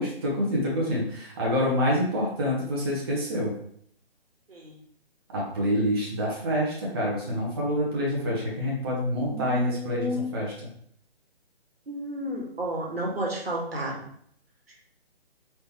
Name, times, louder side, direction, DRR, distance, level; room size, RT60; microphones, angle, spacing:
voice 1, 0.0-3.5 5.3-10.5, equal, 25° right, -4 dB, 0.7 m, -27 dB
voice 2, 9.3-10.3 11.9-14.1, equal, 70° right, -1 dB, 1.3 m, -32 dB
4.2 x 3.1 x 2.8 m, 0.65 s
figure-of-eight pair, 140°, 31 cm